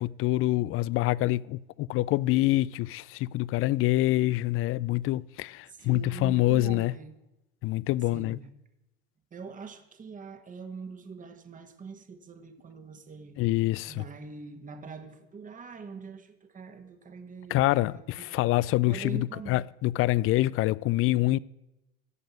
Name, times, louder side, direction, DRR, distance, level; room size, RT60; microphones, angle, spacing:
voice 1, 0.0-6.9 7.6-8.4 13.4-14.0 17.5-21.4, left 17 dB, 45° left, 0.4 m, -26 dB
voice 2, 5.7-7.2 8.1-8.5 9.3-13.4 13.9-18.4 18.9-19.7, right 5 dB, 25° right, 1.5 m, -43 dB
14.5 x 5.3 x 9.3 m
hypercardioid pair, 85°, 31 cm